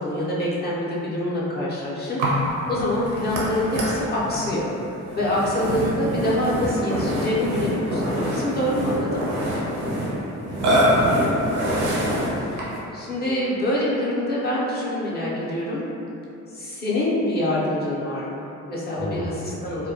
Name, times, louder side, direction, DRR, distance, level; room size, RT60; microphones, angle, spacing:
voice 1, 0.0-9.2 12.0-12.7 12.9-15.9 16.5-19.9, left 1 dB, 35° left, -7 dB, 0.6 m, -26 dB
Burping eructation, 2.2-12.9, equal, 90° right, 0.6 m, -25 dB
voice 2, 10.5-12.0 19.0-19.7, equal, 15° right, -8 dB, 0.4 m, -35 dB
2.2 x 2.1 x 2.7 m, 2.8 s
cardioid pair, 90°, 30 cm